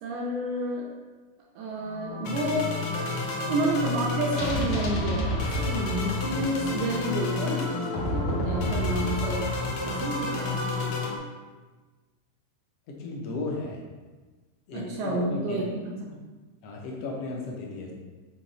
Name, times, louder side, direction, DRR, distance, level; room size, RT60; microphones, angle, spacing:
voice 1, 0.0-0.9 1.5-2.7 3.5-7.7 8.1-9.5 9.9-11.0 14.7-16.2, right 1 dB, 75° right, -2 dB, 1.5 m, -30 dB
sound 1, 1.8-11.2, left 2 dB, 90° left, 1.2 m, -29 dB
voice 2, 12.9-13.8 14.7-15.6 16.6-17.9, left 3 dB, 65° left, -1 dB, 1.6 m, -34 dB
7.3 x 3.1 x 4.2 m, 1.3 s
omnidirectional pair, 3.6 m